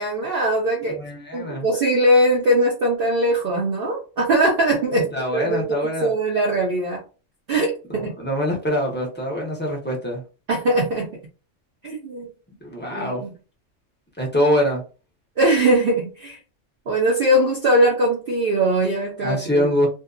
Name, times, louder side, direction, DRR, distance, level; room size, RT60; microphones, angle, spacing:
voice 1, 0.0-1.0 1.3-7.0 7.5-8.1 10.5-11.1 11.8-12.3 12.9-13.3 15.4-16.4 16.9-19.6, right 1 dB, 55° right, -2 dB, 0.7 m, -21 dB
voice 2, 0.9-1.7 5.1-6.1 8.0-10.2 12.6-13.2 14.2-14.8 19.2-19.9, equal, 15° left, -2 dB, 0.5 m, -24 dB
2.7 x 2.2 x 2.4 m, 0.34 s
omnidirectional pair, 1.3 m